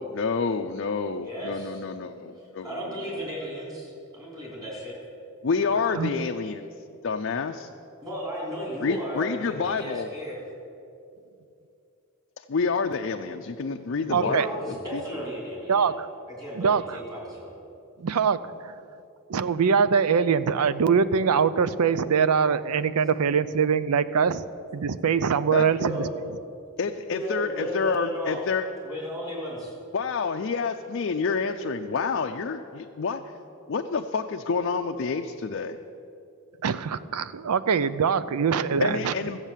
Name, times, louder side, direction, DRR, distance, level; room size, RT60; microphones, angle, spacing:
voice 1, 0.0-2.7 5.4-6.7 7.0-7.7 8.8-10.1 12.4-14.4 14.9-15.0 25.5-25.7 26.8-28.7 29.9-33.2 33.7-35.8 38.8-39.4, left 5 dB, 55° left, 4 dB, 0.5 m, -28 dB
voice 2, 1.2-1.8 2.6-5.0 8.0-10.5 14.1-15.9 16.3-17.5 25.8-26.1 27.1-28.4 28.8-29.8, equal, 15° right, -5 dB, 3.7 m, -35 dB
voice 3, 14.1-14.5 15.7-16.1 16.5-17.0 18.0-18.7 19.3-24.5 24.7-26.0 36.6-39.1, right 6 dB, 85° right, 15 dB, 0.5 m, -23 dB
13.5 x 8.0 x 7.4 m, 2.6 s
head